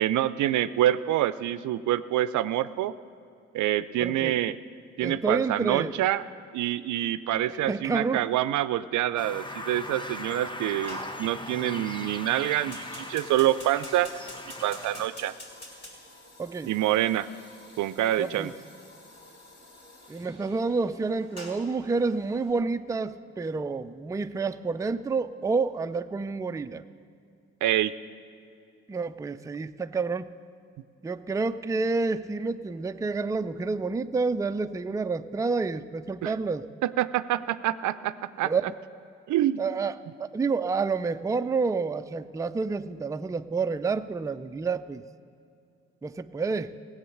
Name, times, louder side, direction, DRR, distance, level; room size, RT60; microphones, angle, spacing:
voice 1, 0.0-2.9 3.5-4.6 5.0-6.2 6.5-14.1 14.6-15.3 16.7-17.3 17.8-18.5 27.6-27.9 36.2-36.3 36.8-38.5 39.3-39.6, right 13 dB, 65° right, 15 dB, 0.5 m, -26 dB
voice 2, 4.0-4.4 5.0-5.9 7.7-8.3 16.4-16.7 18.2-18.5 20.1-26.8 28.9-30.3 31.0-36.7 38.4-38.6 39.6-45.0 46.0-46.7, right 4 dB, 10° right, 10 dB, 0.4 m, -29 dB
sound 1, 9.2-15.1, left 1 dB, 15° left, 0.9 m, -39 dB
Fire, 10.8-22.5, left 1 dB, 50° left, 4.1 m, -48 dB
17.0 x 8.0 x 6.4 m, 2.5 s
hypercardioid pair, 50°, 33 cm